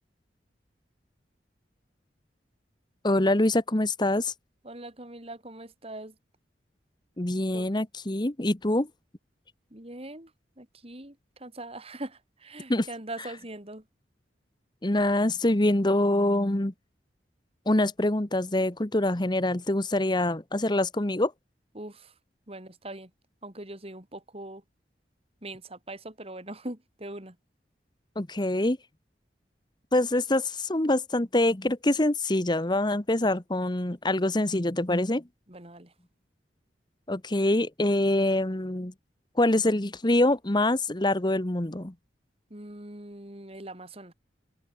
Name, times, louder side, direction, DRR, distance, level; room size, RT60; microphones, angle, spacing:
voice 1, 3.0-4.3 7.2-8.9 12.7-12.9 13.2-13.3 14.8-16.7 17.7-21.3 28.2-28.8 29.9-35.2 37.1-38.9 39.4-41.9, left 1 dB, 25° left, 1.2 m, -25 dB
voice 2, 4.6-6.1 7.5-7.7 9.7-10.3 10.6-13.8 21.7-22.1 22.5-23.1 23.4-24.6 25.4-27.4 35.5-35.9 42.5-44.1, right 1 dB, 35° right, 4.1 m, -41 dB
open air
head